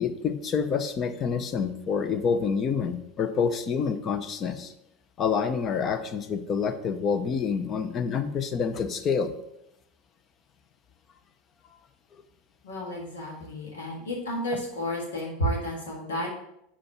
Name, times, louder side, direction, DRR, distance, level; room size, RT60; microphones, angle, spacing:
voice 1, 0.0-4.7 5.2-9.3, left 6 dB, 40° left, 10 dB, 0.8 m, -27 dB
voice 2, 12.6-16.3, equal, 90° left, -2 dB, 1.8 m, -31 dB
5.8 x 5.1 x 5.9 m, 0.80 s
hypercardioid pair, 95°, 0 cm